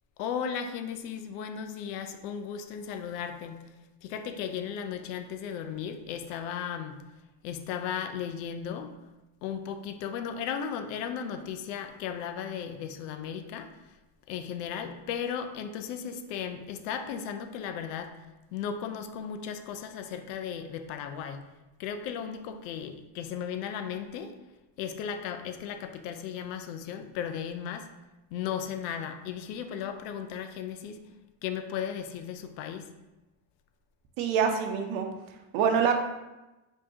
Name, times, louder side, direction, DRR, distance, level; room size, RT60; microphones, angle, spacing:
voice 1, 0.2-3.6 4.0-7.0 7.4-8.9 9.4-13.7 14.3-18.1 18.5-21.4 21.8-24.3 24.8-27.9 28.3-31.0 31.4-32.9, left 8 dB, 85° left, 8 dB, 0.6 m, -35 dB
voice 2, 34.2-35.1 35.5-35.9, right 7 dB, 70° right, 4 dB, 0.8 m, -25 dB
5.3 x 2.8 x 2.8 m, 1.0 s
supercardioid pair, 100°, 48 cm